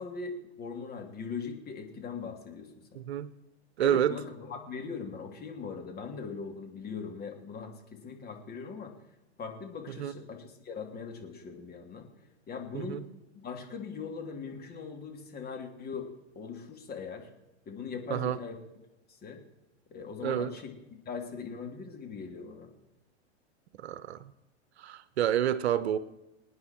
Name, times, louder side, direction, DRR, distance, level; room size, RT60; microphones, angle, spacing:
voice 1, 0.0-3.0 3.8-8.9 9.4-12.1 12.5-13.0 13.4-17.3 17.6-18.6 19.2-19.4 19.9-20.7 21.0-22.7, left 5 dB, 25° left, 3.2 m, -40 dB
voice 2, 2.9-3.3 3.8-4.2 10.0-10.1 12.7-13.1 18.1-18.4 20.2-20.5 23.8-24.2 24.8-26.0, right 10 dB, 70° right, 1.0 m, -29 dB
26.5 x 9.6 x 4.7 m
hypercardioid pair, 105°, 34 cm